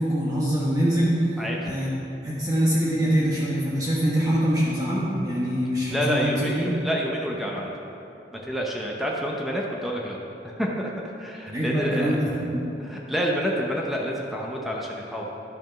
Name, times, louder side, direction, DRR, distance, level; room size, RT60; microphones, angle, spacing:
voice 1, 0.0-1.9 2.2-6.8 11.5-12.6, equal, 20° right, -7 dB, 1.2 m, -24 dB
voice 2, 1.4-1.7 5.9-7.7 8.3-10.2 10.4-10.9 11.2-12.1 12.8-15.3, equal, ahead, -2 dB, 0.7 m, -28 dB
11.0 x 6.1 x 5.8 m, 3.0 s
head